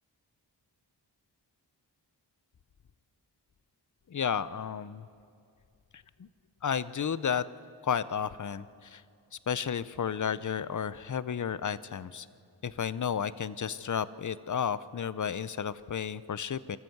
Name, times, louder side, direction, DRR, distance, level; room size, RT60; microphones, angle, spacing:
voice 1, 4.1-5.1 6.2-6.3 6.6-7.4 7.8-9.0 9.5-12.3 12.6-16.8, left 7 dB, 45° left, 16 dB, 0.7 m, -32 dB
26.5 x 14.0 x 7.9 m, 2.4 s
wide cardioid pair, 70°, 43 cm